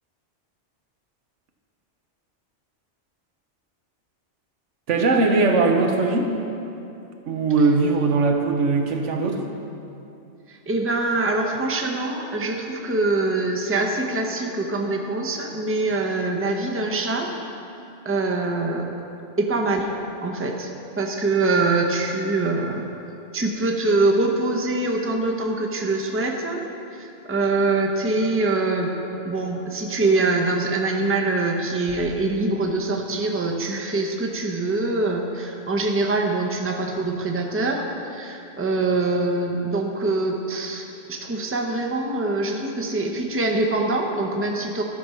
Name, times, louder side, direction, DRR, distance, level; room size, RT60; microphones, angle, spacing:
voice 1, 4.9-6.3 7.3-9.4, right 3 dB, 85° right, 3 dB, 1.3 m, -20 dB
voice 2, 10.5-17.3 18.0-18.9 19.4-19.9 20.2-20.7 21.0-22.9 23.3-28.9 29.2-44.8, right 2 dB, 15° right, 1 dB, 0.7 m, -24 dB
13.5 x 6.0 x 5.5 m, 2.8 s
omnidirectional pair, 1.2 m